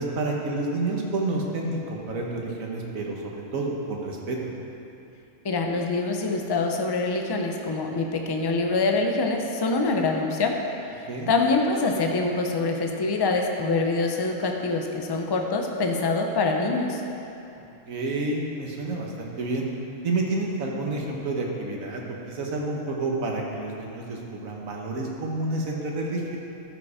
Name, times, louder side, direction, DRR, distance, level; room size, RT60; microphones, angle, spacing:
voice 1, 0.0-4.4 11.1-11.3 17.9-19.7 20.0-22.0 22.3-26.4, right 2 dB, 75° right, -1 dB, 1.5 m, -29 dB
voice 2, 5.4-10.5 11.3-17.0, left 3 dB, 30° left, 2 dB, 0.4 m, -25 dB
13.0 x 5.2 x 4.8 m, 2.9 s
omnidirectional pair, 1.4 m